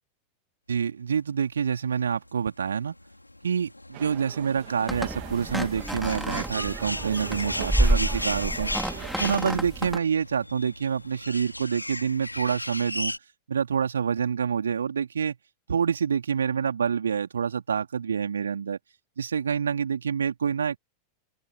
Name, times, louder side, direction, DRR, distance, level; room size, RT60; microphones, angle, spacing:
voice 1, 0.7-2.9 3.4-8.7 9.2-13.1 13.5-15.4 15.7-18.8 19.2-20.8, right 7 dB, 70° right, 4.1 m, -27 dB
sound 1, 2.1-13.2, left 1 dB, 85° left, 5.3 m, -36 dB
sound 2, 3.9-9.1, right 40 dB or more, 45° right, 3.8 m, -42 dB
sound 3, 4.9-10.0, right 1 dB, 5° right, 3.5 m, -29 dB
open air
figure-of-eight pair, 90°, 0 cm